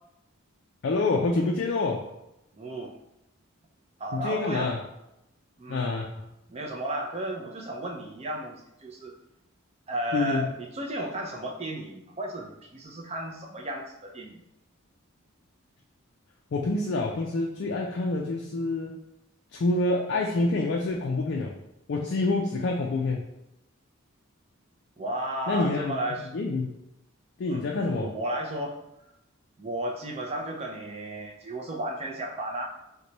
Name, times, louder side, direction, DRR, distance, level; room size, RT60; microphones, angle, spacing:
voice 1, 0.8-2.1 4.1-4.8 5.7-6.3 10.1-10.5 16.5-19.0 19.5-21.5 21.9-23.2 25.5-25.9 26.3-26.7 27.4-28.1, left 3 dB, 55° left, 0 dB, 0.3 m, -27 dB
voice 2, 2.5-3.0 4.0-4.7 5.6-5.9 6.5-9.2 9.9-14.4 25.0-26.4 27.5-28.8 29.6-32.6, right 1 dB, 30° right, 0 dB, 0.5 m, -34 dB
3.0 x 2.2 x 3.9 m, 0.89 s
head